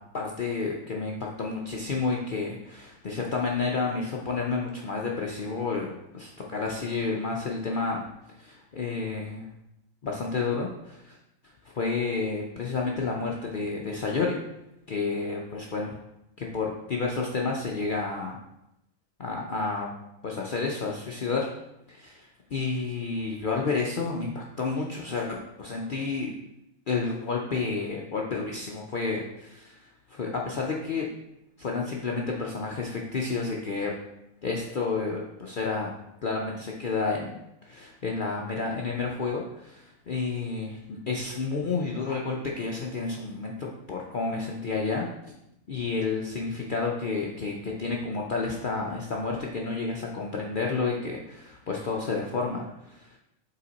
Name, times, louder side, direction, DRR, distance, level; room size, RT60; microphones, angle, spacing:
voice 1, 0.1-8.0 8.3-9.5 10.0-11.2 11.7-14.4 14.9-16.0 16.4-18.4 19.2-19.9 20.2-21.5 21.9-26.3 26.9-31.1 31.6-33.9 34.4-35.9 36.2-37.4 37.6-45.1 45.7-53.2, left 4 dB, 60° left, -1 dB, 0.5 m, -30 dB
5.6 x 4.2 x 4.0 m, 0.86 s
omnidirectional pair, 1.5 m